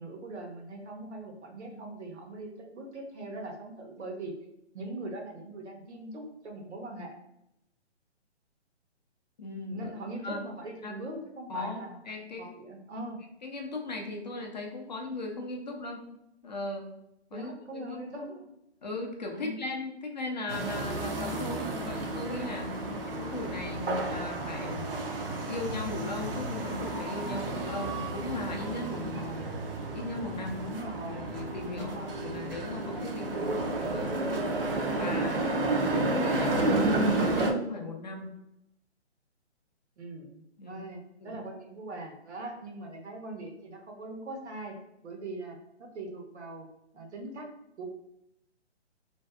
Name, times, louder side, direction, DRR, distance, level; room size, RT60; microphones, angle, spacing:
voice 1, 0.0-4.3 4.7-7.1 9.7-12.0 12.4-13.2 17.3-18.5 19.3-19.6 22.7-22.9 28.9-29.4 30.6-31.2 31.6-32.2 40.0-44.8 45.0-46.7 46.9-47.5 47.8-47.9, right 2 dB, 75° right, 2 dB, 0.9 m, -41 dB
voice 2, 9.4-9.9 10.2-10.4 10.8-11.0 11.5-12.5 13.4-16.1 16.4-16.9 17.3-18.0 18.8-22.7 23.2-24.9 25.3-29.1 29.9-30.6 31.1-34.6 34.9-35.4 35.8-38.2 40.6-40.8 41.2-41.4, left 2 dB, 40° left, 1 dB, 0.4 m, -37 dB
sound 1, 20.5-37.5, right 2 dB, 55° right, 0.5 m, -31 dB
2.6 x 2.3 x 2.3 m, 0.80 s
hypercardioid pair, 160°, 34 cm